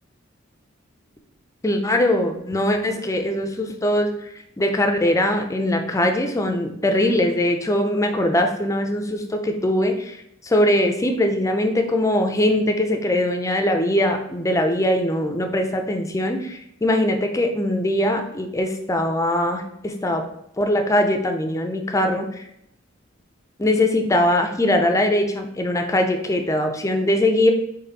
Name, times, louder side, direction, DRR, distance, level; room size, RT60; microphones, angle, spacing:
voice 1, 1.6-4.3 4.6-20.2 20.6-22.4 23.6-27.5, left 1 dB, 15° left, 5 dB, 0.5 m, -21 dB
4.3 x 3.1 x 4.0 m, 0.78 s
head